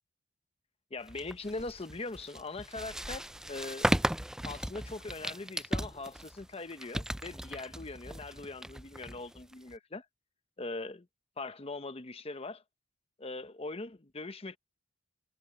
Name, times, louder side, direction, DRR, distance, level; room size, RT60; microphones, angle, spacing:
voice 1, 0.9-3.9 4.4-10.1 10.6-11.1 11.4-12.6 13.2-14.6, left 3 dB, 30° left, 0.8 m, -41 dB
sound 1, 1.1-9.7, right 1 dB, 5° right, 0.3 m, -36 dB
head